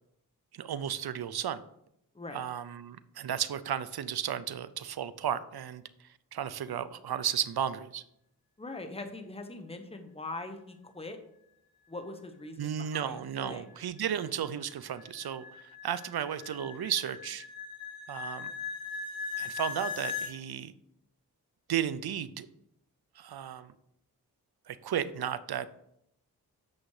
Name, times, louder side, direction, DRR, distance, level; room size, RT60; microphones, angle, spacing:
voice 1, 0.5-1.6 2.3-5.8 6.3-8.0 12.6-15.4 15.8-17.4 18.1-18.5 19.4-20.7 21.7-22.5 23.2-23.7 24.7-25.8, right 9 dB, 70° right, 14 dB, 0.7 m, -34 dB
voice 2, 8.6-11.2 11.9-13.7, left 2 dB, 15° left, 7 dB, 1.2 m, -42 dB
sound 1, 13.2-20.3, left 6 dB, 65° left, 3.1 m, -40 dB
8.7 x 6.4 x 4.9 m, 0.77 s
cardioid pair, 60°, 39 cm